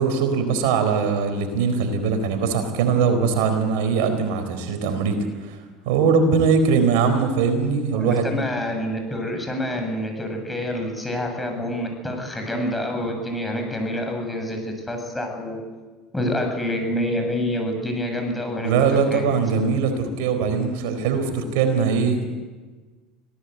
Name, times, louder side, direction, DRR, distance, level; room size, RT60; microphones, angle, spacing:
voice 1, 0.0-5.6 5.9-8.3 18.6-22.3, right 5 dB, 75° right, 7 dB, 4.1 m, -21 dB
voice 2, 7.9-15.6 16.1-19.2, left 1 dB, 10° left, 3 dB, 7.9 m, -27 dB
25.5 x 18.0 x 8.1 m, 1.3 s
hypercardioid pair, 90°, 0 cm